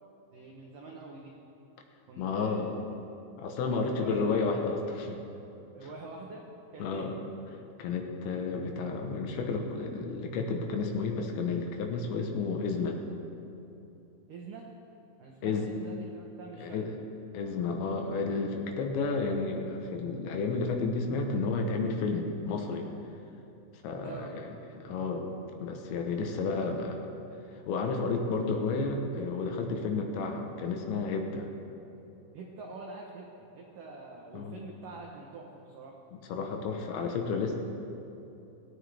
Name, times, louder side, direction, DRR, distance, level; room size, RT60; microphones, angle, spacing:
voice 1, 0.3-1.4 2.1-2.7 3.7-4.4 5.7-7.1 14.3-14.7 15.2-16.8 24.0-24.4 32.3-36.0, right 3 dB, 80° right, -1 dB, 1.9 m, -45 dB
voice 2, 2.2-2.7 3.4-5.2 6.8-7.1 7.8-13.0 15.4-15.8 16.6-17.0 17.3-22.9 23.8-24.5 24.8-25.3 25.6-27.1 27.7-31.5 34.3-34.6 36.1-37.6, left 4 dB, 75° left, 3 dB, 3.3 m, -31 dB
17.5 x 17.5 x 3.5 m, 2.9 s
omnidirectional pair, 5.5 m